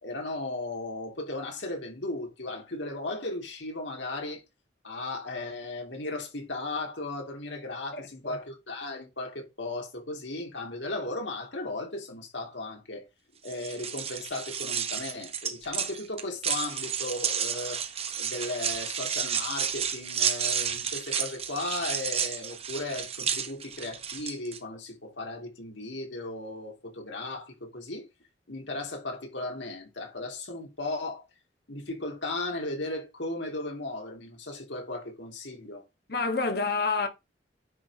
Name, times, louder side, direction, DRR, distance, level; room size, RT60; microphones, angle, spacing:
voice 1, 0.0-4.4 4.8-13.1 13.4-17.8 18.2-28.0 28.5-31.2 31.7-35.8, left 2 dB, 75° left, 2.9 m, -36 dB
voice 2, 7.9-8.3 36.1-37.1, left 4 dB, 55° left, 1.7 m, -28 dB
sound 1, 13.4-24.6, right 7 dB, 35° right, 1.1 m, -31 dB
9.8 x 3.8 x 4.9 m
head